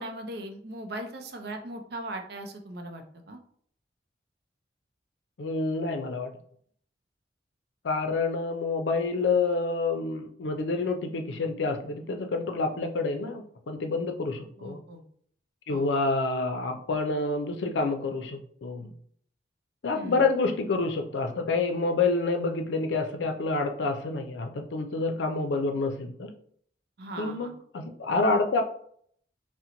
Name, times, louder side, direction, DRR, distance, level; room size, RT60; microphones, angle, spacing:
voice 1, 0.0-3.4 14.6-15.0 15.7-15.9 19.9-20.3 27.0-27.5, right 1 dB, 60° right, 5 dB, 0.5 m, -39 dB
voice 2, 5.4-6.3 7.8-14.8 15.7-18.9 19.8-26.3 27.2-28.6, left 3 dB, 80° left, 5 dB, 0.5 m, -28 dB
2.9 x 2.1 x 3.8 m, 0.62 s
head